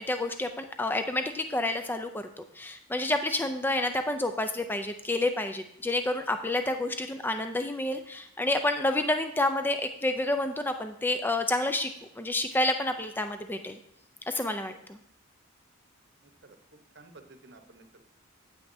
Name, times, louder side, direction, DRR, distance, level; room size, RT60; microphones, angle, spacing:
voice 1, 0.0-13.8 14.3-15.0, left 2 dB, 10° left, 7 dB, 0.4 m, -29 dB
voice 2, 16.2-16.6 16.9-18.0, right 2 dB, 55° right, 6 dB, 0.9 m, -53 dB
9.1 x 8.6 x 2.7 m, 0.75 s
head